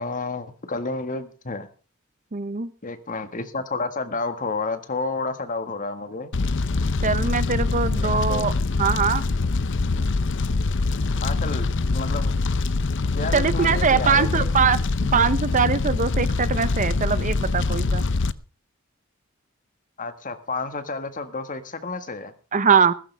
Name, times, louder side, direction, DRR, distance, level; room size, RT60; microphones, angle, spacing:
voice 1, 0.0-1.7 2.8-6.3 8.0-8.6 11.2-12.4 13.1-14.5 20.0-22.3, left 3 dB, 40° left, 9 dB, 1.7 m, -30 dB
voice 2, 2.3-2.7 7.0-8.5 8.8-9.2 13.3-18.0 22.5-22.9, right 6 dB, 40° right, 14 dB, 0.8 m, -22 dB
Fire, 6.3-18.3, left 3 dB, 60° left, 0.7 m, -24 dB
16.5 x 14.5 x 3.4 m, 0.37 s
head